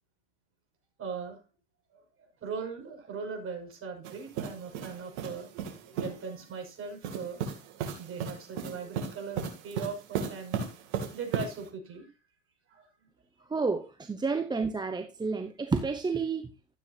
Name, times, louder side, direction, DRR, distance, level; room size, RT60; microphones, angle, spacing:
voice 1, 1.0-1.4 1.9-2.0 2.4-5.5 5.8-7.4 8.0-10.7 11.1-12.1 12.7-12.9, right 5 dB, 35° right, 3 dB, 6.0 m, -39 dB
sound 1, 4.0-6.2 7.0-11.7, right 7 dB, 65° right, 2.9 m, -36 dB
voice 2, 13.5-16.5, right 4 dB, 10° right, 8 dB, 0.9 m, -30 dB
13.5 x 8.6 x 2.8 m, 0.31 s
hypercardioid pair, 90°, 36 cm